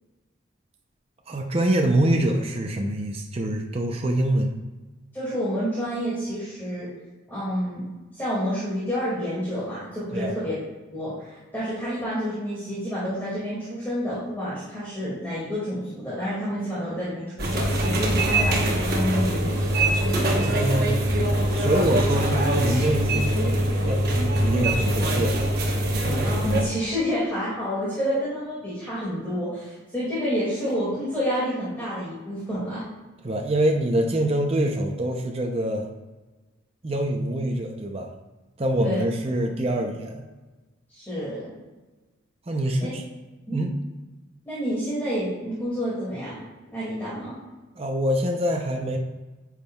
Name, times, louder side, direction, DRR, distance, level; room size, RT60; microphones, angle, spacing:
voice 1, 1.3-4.6 10.1-10.4 20.3-21.0 21.5-25.4 33.2-35.9 36.8-38.1 38.6-40.2 42.5-43.0 43.5-43.7 47.8-49.0, right 1 dB, 30° right, 2 dB, 0.5 m, -25 dB
voice 2, 5.1-6.9 7.3-7.8 8.1-10.5 10.9-19.7 26.2-32.8 38.8-39.0 40.9-41.5 42.8-42.9 43.5-43.6 44.4-46.4 46.7-47.4, equal, 10° left, -10 dB, 2.1 m, -29 dB
sound 1, 17.4-26.6, right 1 dB, 50° right, 1.0 m, -23 dB
9.3 x 5.3 x 2.3 m, 1.2 s
head